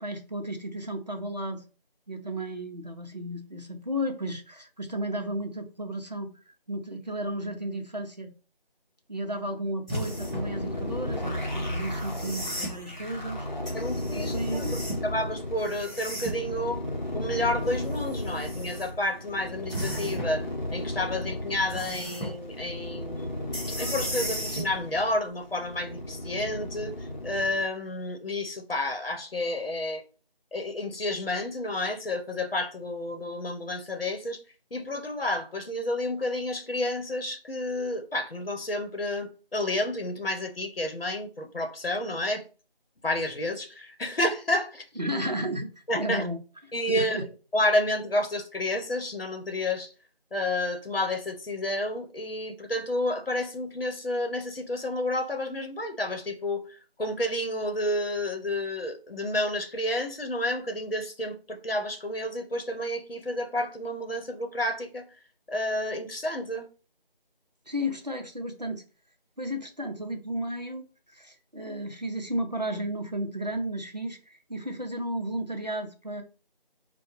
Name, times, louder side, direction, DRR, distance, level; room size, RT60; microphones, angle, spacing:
voice 1, 0.0-1.6 2.1-6.3 6.7-8.3 9.1-13.5 14.1-14.8 45.0-45.7 45.9-46.4 46.9-47.3 67.7-68.8 69.4-76.2, right 1 dB, 45° right, 0.6 m, -33 dB
sound 1, 9.9-27.6, left 1 dB, 50° left, 0.9 m, -34 dB
sound 2, 9.9-10.5 11.9-12.7 13.7-15.1 15.6-16.5 17.6-18.9 19.7-20.4 21.7-22.3 23.5-24.7 26.4-26.5, equal, ahead, 1.0 m, -36 dB
voice 2, 13.7-16.8 17.1-30.0 30.5-34.4 34.7-42.4 43.0-44.8 45.9-46.3 46.7-47.2 47.5-49.9 50.3-56.6 57.0-65.0 65.5-66.7, left 1 dB, 75° left, 0.9 m, -30 dB
4.5 x 2.2 x 3.0 m
figure-of-eight pair, 175°, 29 cm